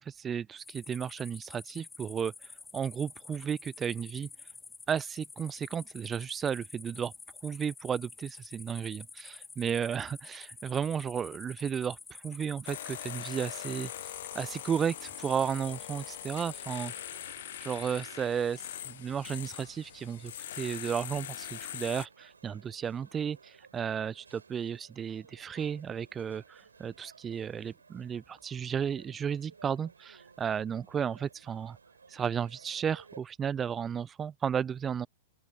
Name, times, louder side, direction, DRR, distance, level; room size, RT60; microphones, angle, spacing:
voice 1, 0.0-4.3 4.9-7.1 7.4-16.9 17.6-31.8 32.1-35.1, right 7 dB, 20° right, 0.3 m, -34 dB
sound 1, 0.6-18.1, left 4 dB, 10° left, 0.8 m, -49 dB
sound 2, 12.7-22.1, left 12 dB, 60° left, 0.5 m, -42 dB
sound 3, 14.6-33.2, right 5 dB, 80° right, 7.6 m, -58 dB
open air
figure-of-eight pair, 105°, 0 cm